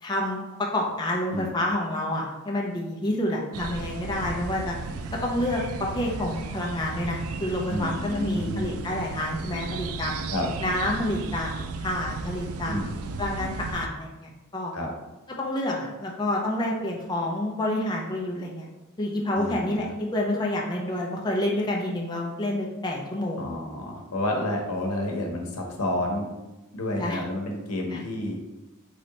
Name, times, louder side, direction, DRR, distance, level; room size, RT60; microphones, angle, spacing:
voice 1, 0.0-4.8 5.2-10.1 10.6-11.5 11.8-12.8 13.2-14.7 15.4-18.6 19.0-23.4 27.0-27.2 27.9-28.0, left 1 dB, 20° left, -2 dB, 0.5 m, -28 dB
sound 1, 3.5-13.9, right 4 dB, 75° right, 0.3 m, -35 dB
voice 2, 7.7-8.7 10.3-10.5 12.7-12.9 14.7-14.9 19.3-19.8 23.4-26.3 26.7-28.4, left 1 dB, 85° left, 1 dB, 0.8 m, -30 dB
3.2 x 2.7 x 4.0 m, 1.0 s
head